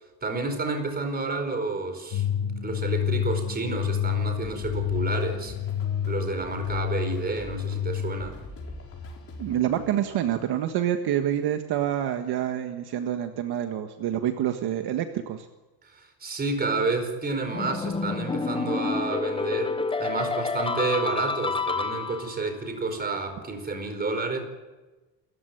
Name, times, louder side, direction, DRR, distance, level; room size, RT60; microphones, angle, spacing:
voice 1, 0.2-2.2 2.6-5.5 6.1-8.4 15.8-24.4, right 3 dB, 20° right, 7 dB, 4.7 m, -30 dB
sound 1, 2.1-8.3, left 9 dB, 55° left, 2.4 m, -29 dB
sound 2, 4.4-10.5, left 2 dB, 30° left, 5.7 m, -44 dB
voice 2, 9.4-15.5, right 11 dB, 60° right, 6 dB, 1.7 m, -27 dB
sound 3, 17.5-22.5, left 4 dB, 10° left, 0.8 m, -29 dB
27.0 x 15.0 x 9.4 m, 1.2 s
cardioid pair, 140°, 45 cm